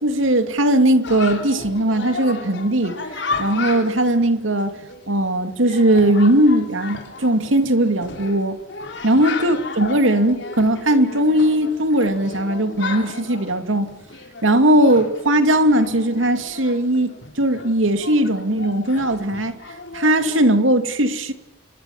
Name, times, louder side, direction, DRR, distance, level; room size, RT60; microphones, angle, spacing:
voice 1, 0.0-3.0 3.4-4.8 5.1-8.6 9.0-13.9 14.4-19.6 19.9-21.3, right 1 dB, 80° right, 8 dB, 2.5 m, -18 dB
Chatter, 1.0-20.6, left 4 dB, 60° left, 3.8 m, -34 dB
28.0 x 23.5 x 7.3 m, 0.93 s
head